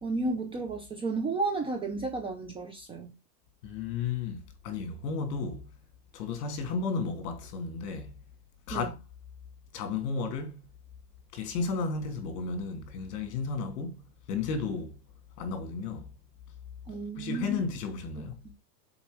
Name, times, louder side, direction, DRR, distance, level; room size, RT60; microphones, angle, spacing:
voice 1, 0.0-3.1 8.7-8.9 16.9-17.6 18.4-18.5, right 3 dB, 10° right, 0.5 m, -32 dB
voice 2, 3.6-5.7 6.1-8.1 8.7-9.0 9.7-10.7 11.3-14.0 14.3-15.0 15.4-16.1 17.2-18.4, left 4 dB, 65° left, 2.7 m, -33 dB
6.9 x 4.3 x 4.9 m
supercardioid pair, 160°, 50 cm